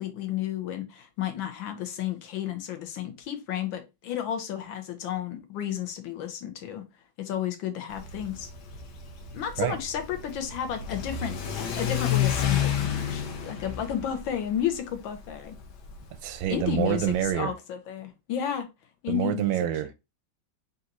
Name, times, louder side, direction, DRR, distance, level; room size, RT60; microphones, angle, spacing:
voice 1, 0.0-6.9 7.2-8.5 9.3-15.6 16.5-18.7 19.0-19.6, left 10 dB, 85° left, 1.6 m, -32 dB
Car / Accelerating revving vroom, 7.9-17.3, left 9 dB, 65° left, 1.3 m, -31 dB
voice 2, 16.2-17.5 19.1-19.9, right 11 dB, 85° right, 1.4 m, -26 dB
4.0 x 2.6 x 4.1 m
omnidirectional pair, 2.1 m